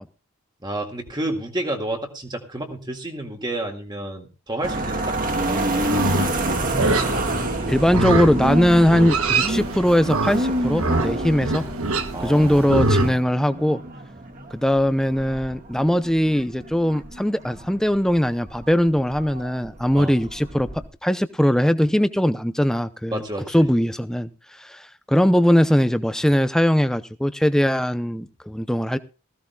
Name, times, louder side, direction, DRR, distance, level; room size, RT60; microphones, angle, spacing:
voice 1, 0.6-5.9 12.1-12.9 19.9-20.1 23.1-23.7, right 1 dB, 20° right, 2.0 m, -30 dB
sound 1, 4.6-20.9, right 1 dB, 40° right, 1.6 m, -28 dB
Livestock farm animals working animals, 5.8-13.1, right 2 dB, 70° right, 1.4 m, -25 dB
voice 2, 7.7-11.6 12.2-13.8 14.5-23.2 23.5-24.3 24.6-29.0, equal, ahead, 0.5 m, -20 dB
19.0 x 15.5 x 2.3 m
head